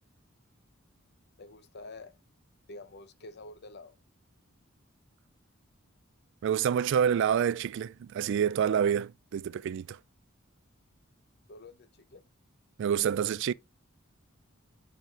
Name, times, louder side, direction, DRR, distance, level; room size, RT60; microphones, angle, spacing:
voice 1, 1.4-2.1 2.7-3.9 11.5-12.2, left 2 dB, 55° left, 0.7 m, -48 dB
voice 2, 6.4-10.0 12.8-13.5, right 8 dB, 60° right, 0.3 m, -27 dB
7.5 x 4.8 x 3.6 m
head